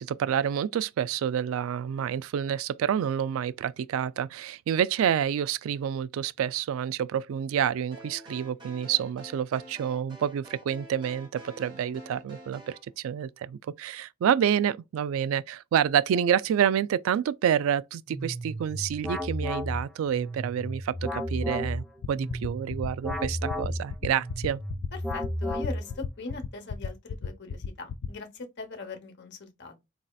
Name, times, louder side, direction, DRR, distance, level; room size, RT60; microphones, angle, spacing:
voice 1, 0.0-24.6, right 9 dB, 75° right, 0.3 m, -28 dB
sound 1, 7.9-12.8, right 1 dB, 25° right, 1.4 m, -47 dB
sound 2, 18.1-26.1, equal, ahead, 0.5 m, -33 dB
sound 3, 22.0-28.1, left 6 dB, 75° left, 0.3 m, -33 dB
voice 2, 24.9-29.8, left 3 dB, 55° left, 0.9 m, -41 dB
4.0 x 2.7 x 2.2 m
head